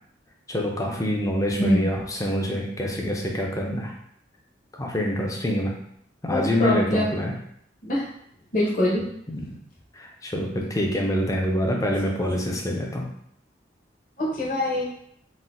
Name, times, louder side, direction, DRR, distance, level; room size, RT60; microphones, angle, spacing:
voice 1, 0.5-3.9 4.8-5.7 6.2-7.3 9.3-9.5 10.0-13.1, equal, 20° left, 0 dB, 0.4 m, -26 dB
voice 2, 1.6-1.9 6.3-7.1 7.8-8.1 8.5-9.0 12.3-12.4 14.2-14.9, left 1 dB, 45° left, -5 dB, 0.9 m, -24 dB
4.0 x 2.1 x 2.4 m, 0.69 s
head